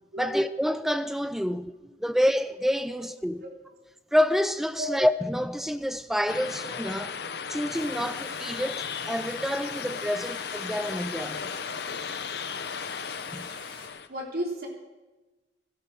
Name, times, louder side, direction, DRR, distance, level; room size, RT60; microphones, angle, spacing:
voice 1, 0.2-1.7 2.0-3.4 4.1-7.1 7.5-11.5 13.3-13.5, equal, ahead, 0.6 m, -28 dB
sound 1, 6.3-14.1, left 6 dB, 60° left, 0.8 m, -35 dB
sound 2, 7.7-13.9, left 3 dB, 25° left, 3.3 m, -46 dB
voice 2, 14.1-14.7, equal, 55° right, 3.5 m, -33 dB
17.0 x 12.5 x 6.4 m
head